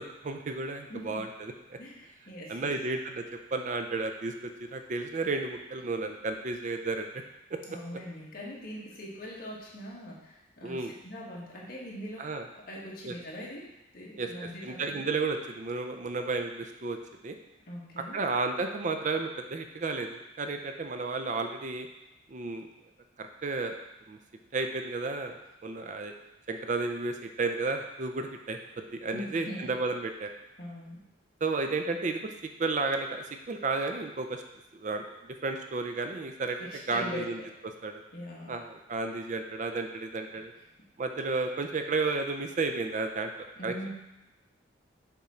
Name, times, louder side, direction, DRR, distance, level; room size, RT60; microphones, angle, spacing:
voice 1, 0.0-1.8 2.5-3.2 3.5-4.3 4.6-7.2 7.5-7.6 10.6-10.9 12.2-12.5 13.0-13.1 14.2-17.0 17.2-17.4 18.0-21.9 22.3-22.7 23.2-23.8 24.1-24.2 24.5-26.1 26.5-30.3 31.4-32.3 32.6-34.4 34.7-35.0 35.4-36.6 36.9-37.4 37.8-38.0 38.5-40.5 41.0-43.3 43.6-43.7, right 3 dB, 40° right, 5 dB, 0.4 m, -32 dB
voice 2, 0.9-1.2 1.8-2.8 7.7-10.8 11.0-12.2 12.5-13.7 13.9-15.0 17.7-18.2 29.1-29.7 30.6-31.0 36.6-37.3 38.1-38.5 43.6-43.9, equal, 50° left, -4 dB, 1.5 m, -41 dB
7.0 x 3.7 x 4.3 m, 0.94 s
head